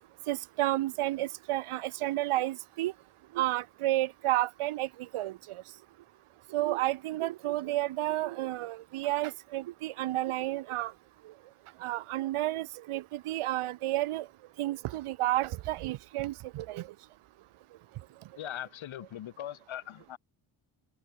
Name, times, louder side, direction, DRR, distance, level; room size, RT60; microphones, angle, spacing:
voice 1, 0.3-2.9 3.3-5.6 6.5-10.9 11.2-11.3 11.8-14.3 14.6-16.9, right 16 dB, 90° right, 1.3 m, -31 dB
voice 2, 18.4-20.2, left 12 dB, 70° left, 2.6 m, -40 dB
open air
cardioid pair, 125°, 49 cm